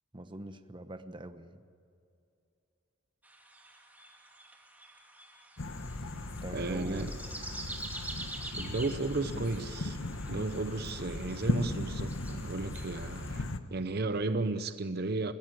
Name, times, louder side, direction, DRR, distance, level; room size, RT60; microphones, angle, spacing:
voice 1, 0.1-1.6 6.0-7.1, right 1 dB, 25° right, 9 dB, 1.1 m, -44 dB
sound 1, 3.2-13.3, right 2 dB, 10° right, 2.5 m, -47 dB
sound 2, 5.6-13.6, left 2 dB, 85° left, 1.3 m, -37 dB
voice 2, 6.5-7.1 8.5-10.0 10.3-13.4 13.7-15.3, right 3 dB, 55° right, 11 dB, 0.8 m, -34 dB
22.0 x 16.5 x 9.2 m, 2.5 s
head